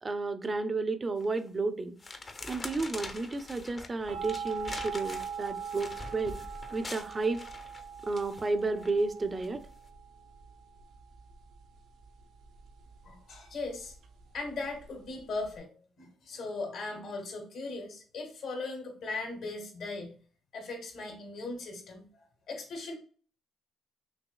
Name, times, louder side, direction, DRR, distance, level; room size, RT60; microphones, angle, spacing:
voice 1, 0.0-2.0 2.4-6.4 6.7-7.4 8.0-9.6, right 3 dB, 30° right, 10 dB, 0.5 m, -32 dB
sound 1, 1.2-1.5 2.0-8.9 9.4-9.7, left 3 dB, 30° left, 0.7 m, -44 dB
sound 2, 4.1-15.6, right 7 dB, 85° right, 0.7 m, -42 dB
voice 2, 13.0-13.9 14.3-20.2 20.5-23.0, left 3 dB, 70° left, 2 dB, 1.7 m, -39 dB
6.0 x 2.8 x 2.3 m, 0.42 s
cardioid pair, 90°, 0 cm